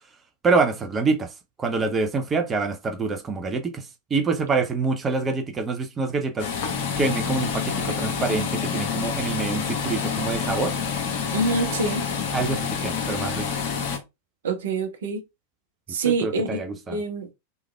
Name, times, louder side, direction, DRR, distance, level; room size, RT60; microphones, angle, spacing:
voice 1, 0.4-6.5 7.0-10.7 12.3-13.5 16.1-17.0, right 4 dB, 20° right, 0.5 m, -26 dB
sound 1, 6.4-14.0, left 6 dB, 45° left, 0.8 m, -28 dB
voice 2, 11.3-12.0 14.4-15.2 15.9-16.6 16.9-17.3, right 3 dB, 60° right, 0.9 m, -25 dB
3.5 x 3.2 x 2.2 m
figure-of-eight pair, 90°, 0 cm